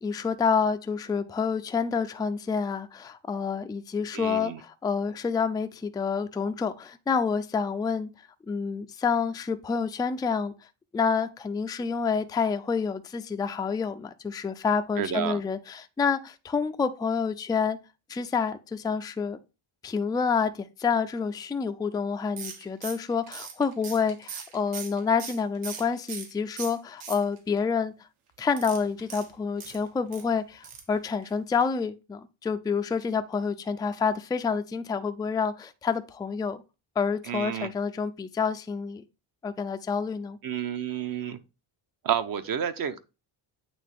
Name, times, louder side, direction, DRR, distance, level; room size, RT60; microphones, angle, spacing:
voice 1, 0.0-8.1 8.5-10.5 10.9-17.8 18.1-19.4 19.8-27.9 28.4-36.6 37.0-39.0 39.4-40.4, left 5 dB, 10° left, 0.3 m, -28 dB
voice 2, 4.1-4.6 15.0-15.4 37.3-37.7 40.4-41.4 42.0-43.0, right 9 dB, 45° right, 0.7 m, -30 dB
sound 1, 22.4-26.3 26.6-27.6 28.5-30.2 30.6-30.9 31.2-31.3 31.6-31.7, right 6 dB, 80° right, 1.6 m, -40 dB
8.7 x 3.3 x 3.5 m
cardioid pair, 115°, 49 cm